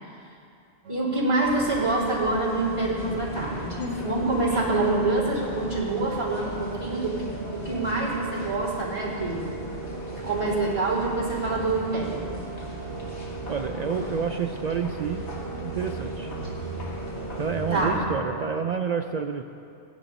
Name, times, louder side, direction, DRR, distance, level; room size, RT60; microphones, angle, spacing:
sound 1, 0.8-18.6, right 3 dB, 85° right, 1.1 m, -39 dB
voice 1, 0.9-3.7 4.0-9.4 10.2-12.3 17.7-18.0, right 2 dB, 25° right, -9 dB, 3.6 m, -26 dB
sound 2, 1.4-18.0, equal, 75° left, 2.1 m, -37 dB
voice 2, 13.5-15.3 15.6-16.3 17.4-19.4, right 6 dB, 60° right, 6 dB, 0.4 m, -29 dB
16.5 x 10.5 x 4.1 m, 2.5 s
omnidirectional pair, 1.2 m